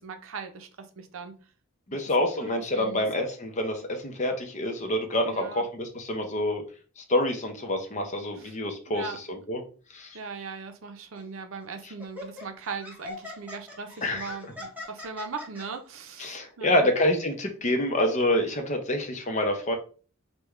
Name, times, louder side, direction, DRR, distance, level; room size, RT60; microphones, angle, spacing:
voice 1, 0.0-1.3 2.4-3.1 5.3-5.7 8.3-8.6 8.9-9.2 10.1-16.9, right 4 dB, 70° right, 6 dB, 0.6 m, -39 dB
voice 2, 1.9-6.6 7.0-9.0 9.5-9.6 9.9-10.2 14.0-14.4 16.2-19.8, left 1 dB, 35° left, 5 dB, 0.6 m, -27 dB
Laughter, 11.2-11.4 12.0-15.7, left 2 dB, 5° right, 0.8 m, -41 dB
3.5 x 2.2 x 3.0 m, 0.39 s
head